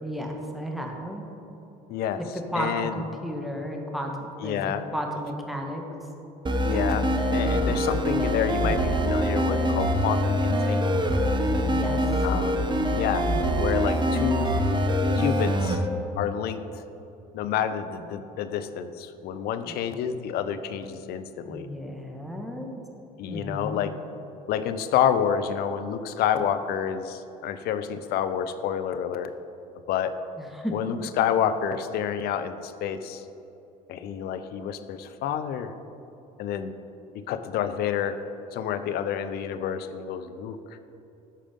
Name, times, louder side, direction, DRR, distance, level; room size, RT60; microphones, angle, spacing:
voice 1, 0.0-1.2 2.2-5.8 11.6-12.0 19.7-19.8 21.5-22.7 23.3-23.8 30.4-30.7, equal, ahead, 1 dB, 1.7 m, -33 dB
voice 2, 1.9-2.2 2.5-3.0 4.4-4.8 6.6-7.0 7.3-11.1 12.2-12.6 12.9-13.3 13.5-14.5 15.1-15.8 16.2-16.6 17.3-21.7 23.2-23.9 24.5-29.3 29.9-30.2 30.7-33.2 33.9-35.7 36.4-36.7 37.3-38.2 38.5-40.6, left 9 dB, 65° left, 10 dB, 0.7 m, -28 dB
sound 1, 6.5-15.8, equal, 25° right, 1.0 m, -24 dB
13.0 x 5.0 x 5.3 m, 2.9 s
supercardioid pair, 75°, 18 cm